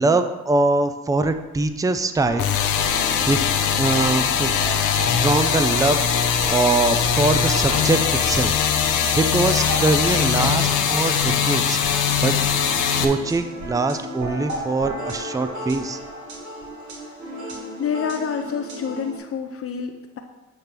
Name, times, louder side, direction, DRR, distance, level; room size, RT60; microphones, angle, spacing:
voice 1, 0.0-2.9 3.3-3.4 3.8-4.6 5.2-8.0 8.3-11.8 12.2-12.3 13.0-16.0, right 3 dB, 10° right, 8 dB, 0.5 m, -23 dB
sound 1, 2.2-19.2, right 1 dB, 70° right, 2.3 m, -34 dB
sound 2, 2.4-13.0, left 8 dB, 85° left, 0.8 m, -21 dB
voice 2, 17.8-20.2, left 7 dB, 50° left, 4 dB, 0.6 m, -28 dB
8.1 x 3.5 x 5.9 m, 1.1 s
cardioid pair, 90°, 30 cm